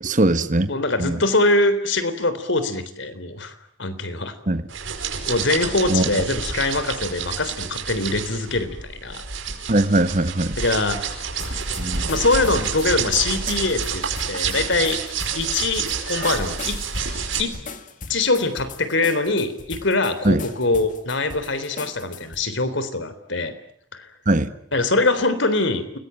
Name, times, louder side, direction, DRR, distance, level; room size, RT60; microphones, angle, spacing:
voice 1, 0.0-0.7 1.0-1.2 4.5-4.6 5.9-6.0 9.7-10.6 11.8-12.1 20.2-20.5 24.3-24.5, right 1 dB, 40° right, 11 dB, 1.4 m, -20 dB
voice 2, 0.7-3.5 3.8-4.4 5.3-8.8 9.0-9.2 10.6-11.0 12.1-15.0 15.4-16.8 17.4-17.6 18.1-23.5 23.9-24.1 24.7-26.0, left 2 dB, 70° left, 12 dB, 3.7 m, -23 dB
sound 1, 4.7-17.4, right 6 dB, 80° right, 5.0 m, -29 dB
sound 2, 11.4-22.4, left 4 dB, 40° left, 2.3 m, -39 dB
29.0 x 21.0 x 9.1 m, 0.67 s
head